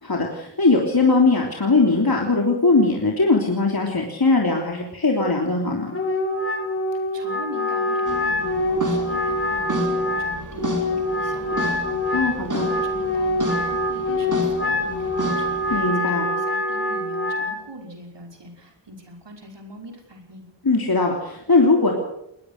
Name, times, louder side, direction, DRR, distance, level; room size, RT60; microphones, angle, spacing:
voice 1, 0.0-5.9 12.1-12.6 15.7-16.2 20.6-21.9, left 3 dB, 50° left, 1 dB, 3.4 m, -20 dB
Wind instrument woodwind instrument, 5.9-17.6, left 1 dB, 30° left, 4.6 m, -25 dB
voice 2, 7.1-20.5, right 1 dB, 65° right, 2 dB, 5.5 m, -41 dB
sound 1, 8.1-15.9, right 1 dB, 40° right, 4.3 m, -31 dB
20.5 x 19.5 x 6.6 m, 0.80 s
wide cardioid pair, 45°, 45 cm